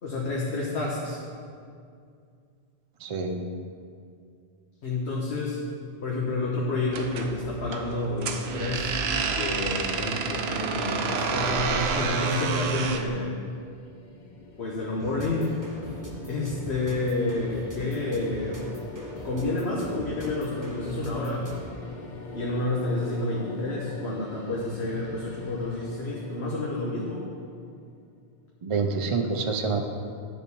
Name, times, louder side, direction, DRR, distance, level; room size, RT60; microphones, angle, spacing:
voice 1, 0.0-1.2 4.8-5.6 6.0-8.9 9.3-13.3 14.6-15.6 16.3-18.6 19.2-21.6 22.3-27.2, left 2 dB, 80° left, -4 dB, 1.4 m, -29 dB
voice 2, 3.0-3.4 28.6-29.8, right 4 dB, 40° right, 4 dB, 0.5 m, -27 dB
sound 1, 6.9-13.1, right 5 dB, 80° right, 0.9 m, -29 dB
sound 2, 12.8-27.7, left 2 dB, 50° left, 0.9 m, -43 dB
sound 3, 15.0-21.9, right 1 dB, 20° right, 0.9 m, -43 dB
10.5 x 4.3 x 6.9 m, 2.3 s
omnidirectional pair, 1.1 m